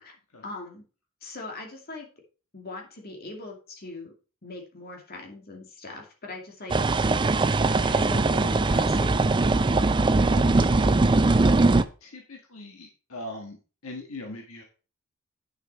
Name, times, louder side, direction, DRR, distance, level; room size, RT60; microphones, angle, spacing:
voice 1, 0.4-0.8 1.2-2.1 2.5-4.1 4.4-7.1 7.8-9.4, left 2 dB, 45° left, 1 dB, 2.5 m, -41 dB
sound 1, 6.7-11.8, right 3 dB, 20° right, 0.4 m, -21 dB
voice 2, 10.3-11.0 12.0-13.6 13.8-14.6, left 1 dB, 70° left, 2 dB, 1.6 m, -40 dB
8.9 x 6.8 x 4.3 m, 0.35 s
head